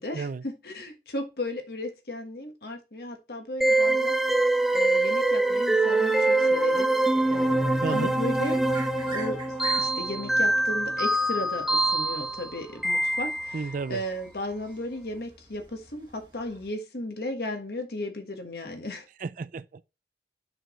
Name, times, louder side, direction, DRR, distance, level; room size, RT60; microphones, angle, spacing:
voice 1, 0.0-4.2 4.7-6.9 7.3-8.6 9.0-19.1, left 1 dB, 60° left, 1.5 m, -35 dB
sound 1, 3.6-13.8, right 2 dB, ahead, 0.6 m, -24 dB
voice 2, 7.8-8.1 13.5-14.0 19.2-19.8, right 4 dB, 45° right, 0.3 m, -32 dB
sound 2, 8.4-16.7, right 2 dB, 25° right, 1.5 m, -46 dB
6.8 x 6.1 x 3.1 m
head